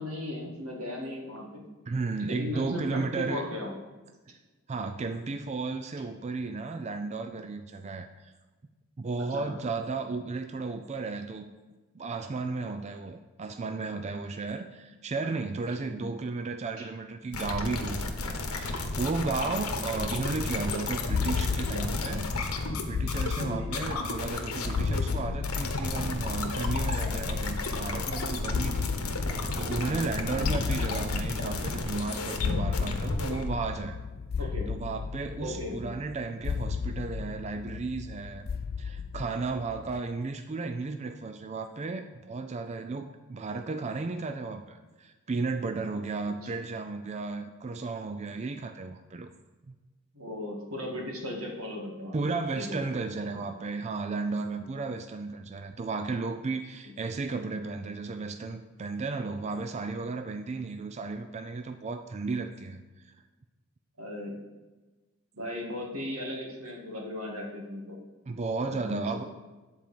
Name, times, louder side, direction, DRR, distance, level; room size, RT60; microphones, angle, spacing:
voice 1, 0.0-1.7 2.3-3.8 9.3-9.5 15.8-16.0 16.8-16.9 18.7-18.8 19.9-20.2 23.4-23.8 30.4-30.6 34.4-34.7 35.4-35.9 50.1-52.9 53.3-53.4 64.0-64.4 65.4-68.0 68.8-69.3, left 1 dB, 85° right, -1 dB, 2.1 m, -37 dB
voice 2, 1.9-3.4 4.3-4.4 4.7-8.3 9.0-11.4 11.9-34.0 34.4-38.5 38.8-49.3 49.7-49.8 52.1-63.1 68.3-69.2, right 3 dB, 30° right, 7 dB, 0.4 m, -34 dB
sound 1, 17.3-33.6, left 2 dB, 85° left, 1.1 m, -33 dB
sound 2, 21.1-40.0, left 5 dB, 45° left, 0.3 m, -34 dB
9.7 x 4.5 x 6.9 m, 1.2 s
head